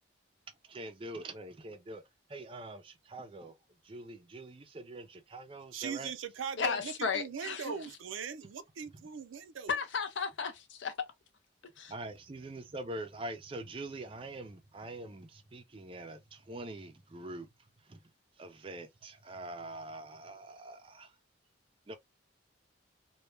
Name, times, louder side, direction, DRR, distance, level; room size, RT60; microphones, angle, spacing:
voice 1, 0.7-2.0 2.3-3.5 3.8-6.1 11.9-17.5 17.9-18.0 18.4-21.1 21.9-22.0, right 2 dB, 25° right, 0.4 m, -44 dB
voice 2, 5.7-9.8, right 6 dB, 85° right, 0.5 m, -40 dB
voice 3, 6.6-7.7 9.7-10.9 11.8-11.9, left 5 dB, 70° left, 0.6 m, -34 dB
2.2 x 2.1 x 3.1 m
head